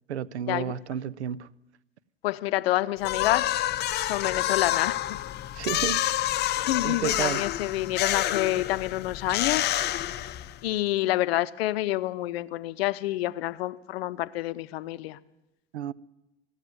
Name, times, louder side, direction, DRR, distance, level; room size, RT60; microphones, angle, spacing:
voice 1, 0.1-1.5 5.5-6.1 6.8-7.5 15.7-15.9, right 9 dB, 85° right, 0.5 m, -31 dB
voice 2, 2.2-3.5 4.0-5.2 6.7-9.7 10.6-15.2, left 16 dB, 65° left, 0.7 m, -28 dB
sound 1, 3.0-10.7, left 13 dB, 30° left, 0.6 m, -28 dB
15.0 x 8.0 x 9.5 m
hypercardioid pair, 85°, 33 cm